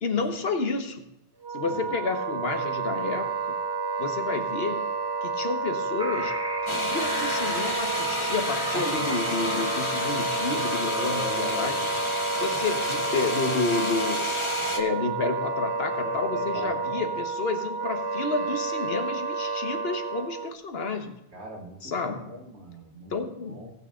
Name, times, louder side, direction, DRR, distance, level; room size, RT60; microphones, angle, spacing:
voice 1, 0.0-1.1 1.5-3.6 4.0-4.8 5.2-6.4 6.7-11.8 12.3-14.2 14.7-21.2 21.8-22.4 23.1-23.6, left 3 dB, 65° left, 6 dB, 1.3 m, -30 dB
Wind instrument woodwind instrument, 1.4-20.5, right 4 dB, 30° right, 0.4 m, -30 dB
sound 1, 6.0-11.3, right 1 dB, 5° right, 1.6 m, -37 dB
sound 2, 6.7-14.8, left 2 dB, 30° left, 1.0 m, -31 dB
voice 2, 9.1-9.6 10.9-12.0 16.0-17.1 21.3-23.1 23.5-23.7, right 1 dB, 75° right, -1 dB, 2.5 m, -39 dB
17.5 x 6.4 x 3.7 m, 0.86 s
omnidirectional pair, 1.1 m